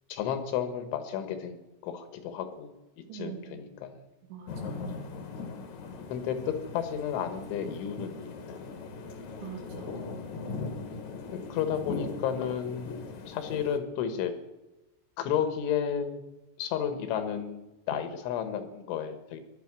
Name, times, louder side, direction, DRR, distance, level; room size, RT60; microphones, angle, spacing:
voice 1, 0.1-1.6 1.8-2.7 3.1-4.0 6.1-8.6 11.3-14.3 15.2-16.2 16.6-19.4, left 8 dB, 80° left, 9 dB, 3.9 m, -32 dB
voice 2, 3.1-3.8 4.3-5.0 9.4-10.0, right 9 dB, 75° right, 2 dB, 4.9 m, -44 dB
sound 1, 4.5-13.8, left 4 dB, 55° left, 2.3 m, -39 dB
17.5 x 12.0 x 6.1 m, 1.0 s
omnidirectional pair, 5.5 m